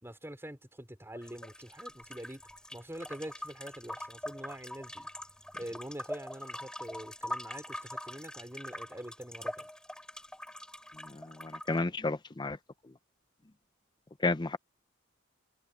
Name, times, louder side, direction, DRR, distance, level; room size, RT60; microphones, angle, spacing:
voice 1, 0.0-2.4 2.7-5.1 5.5-9.7, right 1 dB, 10° right, 4.5 m, -45 dB
sound 1, 1.2-11.8, left 1 dB, 5° left, 7.3 m, -43 dB
voice 2, 11.1-12.6 14.2-14.6, left 3 dB, 20° left, 0.5 m, -32 dB
head